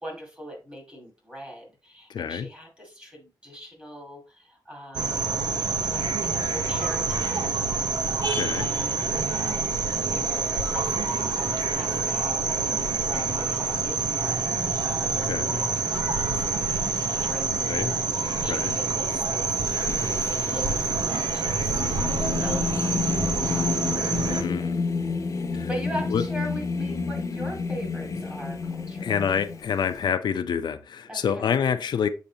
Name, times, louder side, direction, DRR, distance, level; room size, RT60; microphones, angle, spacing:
voice 1, 0.0-5.3 5.8-8.0 8.3-16.7 17.2-19.6 20.1-23.9 24.2-24.9 25.7-29.5 31.1-31.5, equal, 15° right, 2.3 m, -41 dB
voice 2, 2.1-2.5 8.3-8.7 15.3-15.6 17.5-18.0 18.5-18.8 24.3-25.0 25.5-25.7 26.1-26.2 29.0-32.1, left 7 dB, 90° left, 0.5 m, -27 dB
sound 1, 4.9-24.4, right 4 dB, 75° right, 1.0 m, -27 dB
Singing, 19.6-30.0, left 4 dB, 45° left, 0.7 m, -30 dB
7.1 x 5.1 x 2.8 m
wide cardioid pair, 175°, 7 cm